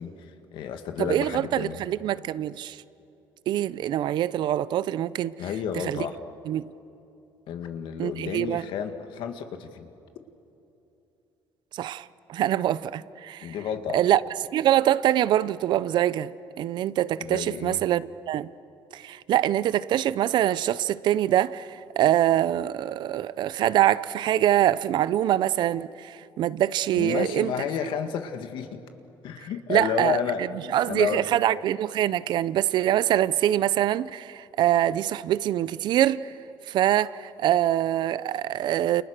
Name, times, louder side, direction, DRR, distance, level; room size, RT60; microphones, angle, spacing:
voice 1, 0.0-1.8 5.4-6.2 7.5-9.9 13.4-14.0 17.2-17.8 26.9-28.8 29.2-30.5 30.9-31.3, left 7 dB, 70° left, 2.2 m, -31 dB
voice 2, 1.0-2.8 3.5-5.3 5.8-6.1 6.5-6.7 8.0-8.6 11.7-13.5 13.9-14.2 14.5-16.3 16.6-18.5 18.9-27.5 29.7-30.5 30.7-36.3 36.7-39.0, right 12 dB, 60° right, 0.6 m, -24 dB
29.5 x 29.5 x 6.7 m
cardioid pair, 145°, 9 cm